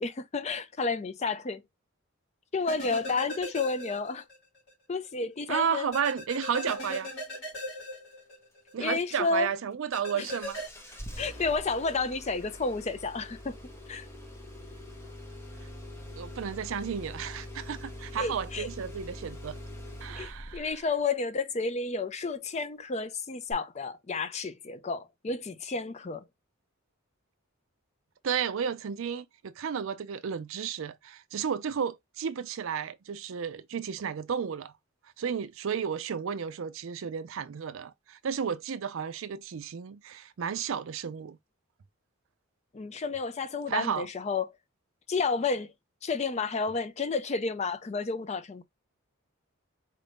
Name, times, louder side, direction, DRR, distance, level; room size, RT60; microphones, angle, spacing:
voice 1, 0.0-1.6 2.5-4.2 4.9-5.9 8.8-9.5 10.1-10.3 11.2-13.6 13.9-14.1 18.2-18.7 20.2-26.2 42.7-44.5 45.1-45.7 46.0-48.6, left 4 dB, 30° left, 0.4 m, -31 dB
sound 1, 2.7-4.4 4.7-4.8 5.9-8.7 9.9-10.7, left 1 dB, 50° left, 2.6 m, -38 dB
voice 2, 5.5-7.1 8.7-10.6 16.2-19.6 20.0-20.7 28.2-34.7 35.2-41.4 43.7-44.1, right 7 dB, 65° right, 0.4 m, -32 dB
Engine starting, 10.3-20.9 23.5-23.6, left 1 dB, 10° left, 0.8 m, -44 dB
4.4 x 2.6 x 3.4 m
head